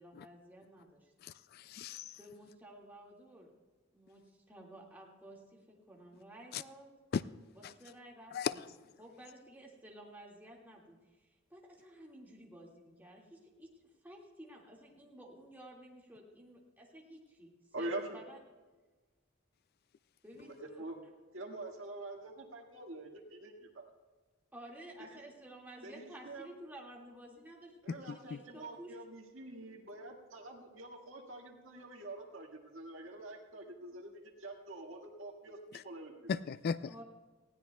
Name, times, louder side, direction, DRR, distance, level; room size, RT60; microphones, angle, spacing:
voice 1, 0.0-1.1 2.2-3.5 3.9-6.9 7.5-8.7 9.0-13.7 14.0-17.5 17.8-18.4 20.2-20.8 24.5-29.0 36.9-37.0, right 1 dB, 10° right, -3 dB, 2.0 m, -53 dB
voice 2, 1.2-2.1 6.5-6.6 7.1-7.2 8.3-8.5 28.3-28.4 35.7-35.8 36.3-36.8, left 6 dB, 50° left, 15 dB, 0.3 m, -36 dB
voice 3, 17.7-18.2 20.4-21.0 21.3-23.9 25.0-25.2 25.8-26.5 27.8-36.3, right 2 dB, 70° right, 1 dB, 1.8 m, -45 dB
19.5 x 16.0 x 2.3 m, 1.3 s
head